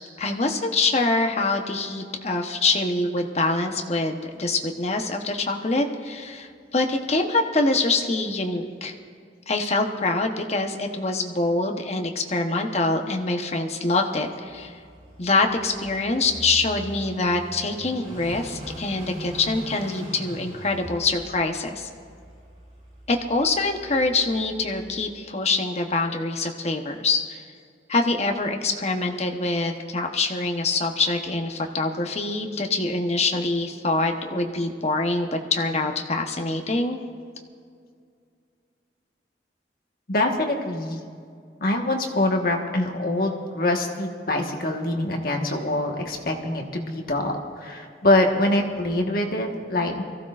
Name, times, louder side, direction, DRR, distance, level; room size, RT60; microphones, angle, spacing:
voice 1, 0.2-8.9 9.5-14.8 15.2-21.9 23.1-27.4 27.9-37.0, left 3 dB, 40° left, 3 dB, 1.0 m, -25 dB
Car passing by / Idling, 14.5-25.1, equal, 35° right, 4.4 m, -41 dB
voice 2, 40.1-41.0 41.6-50.0, left 1 dB, 55° left, 2 dB, 1.5 m, -24 dB
23.5 x 15.0 x 2.5 m, 2.3 s
head